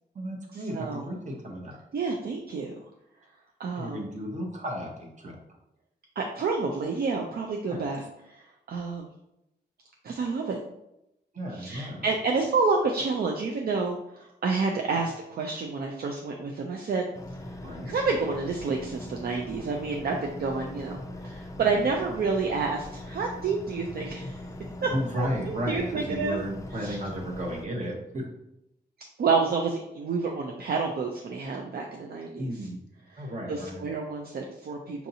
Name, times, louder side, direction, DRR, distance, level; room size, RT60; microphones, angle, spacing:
voice 1, 0.1-1.8 3.7-5.4 7.7-7.8 11.3-12.0 17.6-17.9 24.8-28.2 32.4-32.8 33.2-33.9, equal, 45° right, 0 dB, 1.0 m, -34 dB
voice 2, 0.7-1.1 1.9-2.8 3.6-4.0 6.2-8.0 8.3-9.1 10.0-10.6 11.5-17.1 17.9-24.4 24.8-26.4 26.7-27.0 29.2-32.7 33.1-35.1, right 4 dB, 65° right, 1 dB, 0.5 m, -29 dB
sound 1, 17.1-27.7, left 1 dB, 20° left, 0.4 m, -41 dB
5.7 x 2.7 x 2.7 m, 0.85 s
wide cardioid pair, 125°, 17 cm